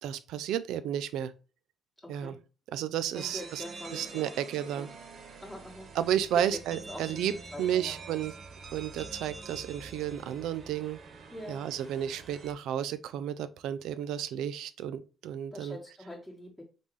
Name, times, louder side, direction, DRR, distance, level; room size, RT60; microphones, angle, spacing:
voice 1, 0.0-1.3 2.1-2.4 2.7-3.6 3.9-4.9 5.9-7.3 7.6-8.3 8.7-11.0 11.5-15.8, right 10 dB, 85° right, 0.4 m, -32 dB
voice 2, 3.1-4.3 4.7-4.8 5.4-5.9 6.3-6.6 6.9-7.2 7.5-8.0 11.3-11.6 15.5-16.6, left 1 dB, ahead, 1.5 m, -43 dB
sound 1, 3.1-12.5, right 4 dB, 50° right, 0.8 m, -46 dB
4.0 x 3.6 x 3.1 m
cardioid pair, 90°, 0 cm